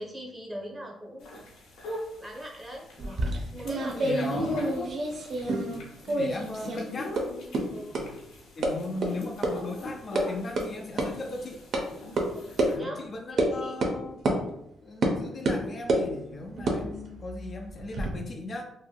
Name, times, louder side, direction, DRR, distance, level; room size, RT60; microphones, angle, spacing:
voice 1, 0.0-1.4 2.2-2.8 3.5-4.4 7.7-7.9 12.3-13.8, equal, 15° right, 0 dB, 0.8 m, -40 dB
sound 1, 1.2-12.8, left 1 dB, 90° left, 0.8 m, -42 dB
sound 2, 3.0-5.8 6.1-6.8 7.2-7.3 7.5-7.6 7.9-8.0 8.6-8.7 9.0-9.1 9.4-9.5 9.9-10.2 10.6-10.7 11.0-11.1 11.7-11.8 12.2-12.3 12.6-12.7 13.4-13.5 13.8-14.0 14.3-14.4 15.0-15.2 15.5-16.1 16.6-18.1, right 2 dB, 55° right, 0.5 m, -27 dB
voice 2, 3.5-4.8 6.1-7.8 8.6-11.6 12.7-14.2 14.8-18.6, left 2 dB, 40° left, 2 dB, 0.3 m, -38 dB
2.9 x 2.5 x 2.3 m, 0.81 s
cardioid pair, 90°, 0 cm